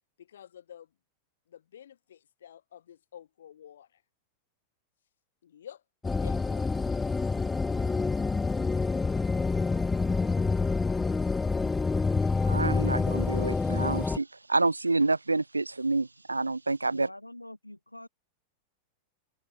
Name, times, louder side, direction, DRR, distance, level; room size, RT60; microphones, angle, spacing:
voice 1, 0.2-0.9 1.5-4.0 5.4-5.8 6.2-6.7, left 9 dB, 65° left, 4.2 m, -50 dB
sound 1, 6.0-14.2, left 4 dB, 10° left, 0.5 m, -27 dB
voice 2, 12.4-17.1, right 3 dB, 80° right, 0.4 m, -28 dB
voice 3, 16.9-18.1, left 1 dB, 85° left, 1.4 m, -45 dB
figure-of-eight pair, 90°, 0 cm